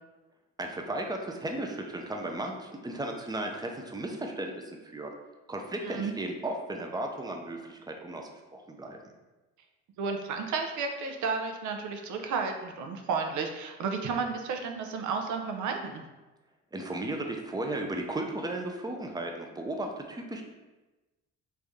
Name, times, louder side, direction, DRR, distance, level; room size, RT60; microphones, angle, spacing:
voice 1, 0.6-5.1 5.5-9.0 16.7-20.4, right 1 dB, 15° right, 2 dB, 0.5 m, -35 dB
voice 2, 10.0-16.0, right 5 dB, 75° right, 4 dB, 0.6 m, -32 dB
3.3 x 2.7 x 3.5 m, 1.1 s
cardioid pair, 90°, 30 cm